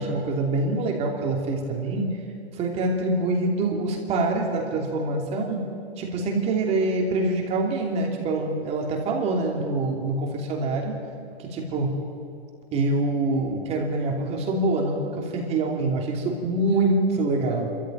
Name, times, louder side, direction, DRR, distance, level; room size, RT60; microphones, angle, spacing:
voice 1, 0.0-2.1 2.5-5.6 6.0-10.9 11.4-12.0 12.7-17.7, right 2 dB, 20° right, 0 dB, 2.8 m, -25 dB
28.5 x 14.0 x 9.2 m, 2.5 s
hypercardioid pair, 160°, 31 cm